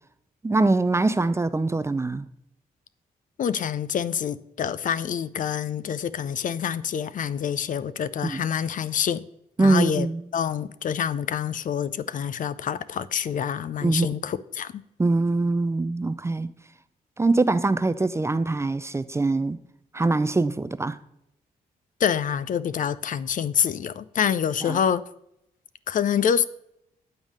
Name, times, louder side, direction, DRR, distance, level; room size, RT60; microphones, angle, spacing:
voice 1, 0.4-2.3 8.2-8.4 9.6-10.2 13.8-14.1 15.0-16.5 17.2-19.6 19.9-21.0 24.6-24.8, right 3 dB, 15° right, 0.4 m, -23 dB
voice 2, 3.4-9.2 9.6-10.1 10.3-14.8 22.0-25.0 25.9-26.4, left 8 dB, 60° left, 0.4 m, -26 dB
8.9 x 3.6 x 6.4 m
cardioid pair, 70°, 16 cm